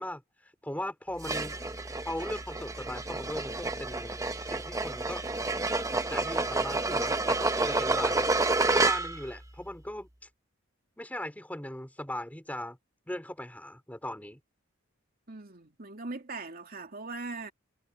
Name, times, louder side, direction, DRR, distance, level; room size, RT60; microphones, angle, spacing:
voice 1, 0.0-5.2 5.7-8.3 8.7-10.1 11.0-12.8 13.1-14.4, left 1 dB, 10° left, 3.1 m, -39 dB
sound 1, 1.2-9.3, right 3 dB, 15° right, 1.0 m, -29 dB
voice 2, 15.3-17.5, right 3 dB, 50° right, 2.9 m, -40 dB
head